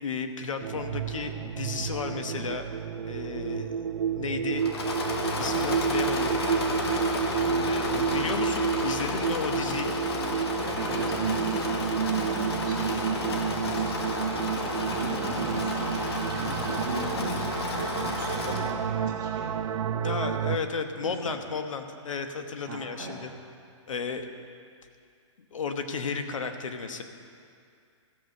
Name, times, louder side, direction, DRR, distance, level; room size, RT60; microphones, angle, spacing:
voice 1, 0.0-2.7 3.1-3.8 4.1-4.7 5.4-6.3 7.6-9.9 20.0-23.3 23.9-24.3 25.5-27.0, left 5 dB, 80° left, 7 dB, 1.2 m, -33 dB
sound 1, 0.6-20.6, right 7 dB, 85° right, 0.5 m, -30 dB
Engine / Mechanisms, 4.6-18.8, left 3 dB, 50° left, 1.2 m, -32 dB
voice 2, 7.4-8.4 10.6-11.8 12.1-13.9 14.5-19.5 21.0-21.4 22.7-23.1, right 3 dB, 40° right, -5 dB, 1.5 m, -39 dB
15.0 x 6.4 x 6.5 m, 2.4 s
hypercardioid pair, 175°, 16 cm